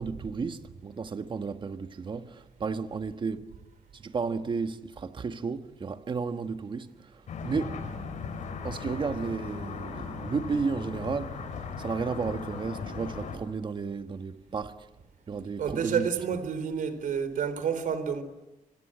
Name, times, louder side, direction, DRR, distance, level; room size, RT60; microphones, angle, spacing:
voice 1, 0.0-3.5 3.9-7.8 8.6-14.9 15.3-16.1, right 5 dB, 35° right, 1.5 m, -33 dB
sound 1, 7.3-13.4, left 5 dB, 65° left, 6.3 m, -37 dB
voice 2, 15.6-18.2, right 7 dB, 70° right, 3.9 m, -29 dB
26.0 x 25.5 x 8.8 m
wide cardioid pair, 150°, 14 cm